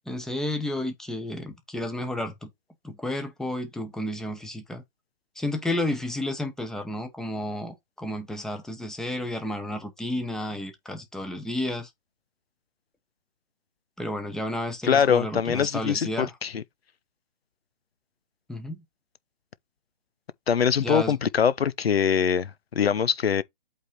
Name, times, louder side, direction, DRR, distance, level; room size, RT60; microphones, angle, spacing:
voice 1, 0.1-2.5 2.8-4.8 5.4-11.9 14.0-16.3 18.5-18.8 20.8-21.2, left 1 dB, ahead, 0.9 m, -31 dB
voice 2, 14.8-16.6 20.5-23.4, left 7 dB, 90° left, 1.0 m, -23 dB
8.3 x 3.8 x 4.2 m
hypercardioid pair, 155°, 30 cm